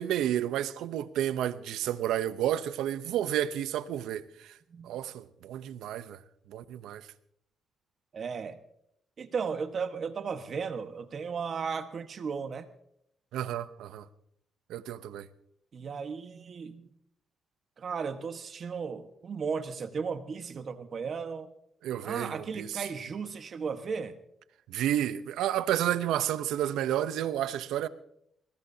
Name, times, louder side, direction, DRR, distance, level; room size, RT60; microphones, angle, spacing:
voice 1, 0.0-4.5 4.8-6.2 6.5-7.1 13.3-14.1 14.7-15.3 21.8-22.8 24.7-27.9, right 11 dB, 85° right, 0.7 m, -31 dB
voice 2, 8.1-8.6 9.2-12.7 15.7-16.9 17.8-21.5 22.0-24.1, right 5 dB, 50° right, 1.3 m, -35 dB
21.5 x 19.0 x 2.8 m
cardioid pair, 90°, 0 cm